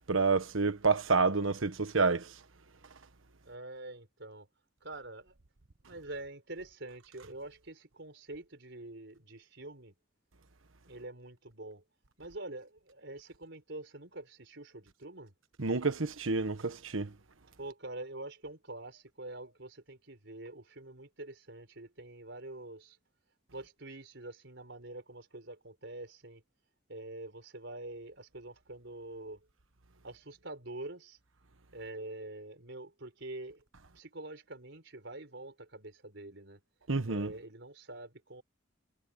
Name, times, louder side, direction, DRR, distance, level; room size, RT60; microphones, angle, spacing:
voice 1, 0.1-2.3 15.6-17.1 36.9-37.3, right 4 dB, 85° right, 1.3 m, -28 dB
voice 2, 3.4-4.5 4.8-5.3 5.8-9.9 10.9-11.8 12.2-15.3 17.6-23.0 23.5-26.4 26.9-29.5 30.0-31.2 31.7-33.6 33.9-36.6 37.1-38.4, right 2 dB, 60° right, 5.2 m, -46 dB
head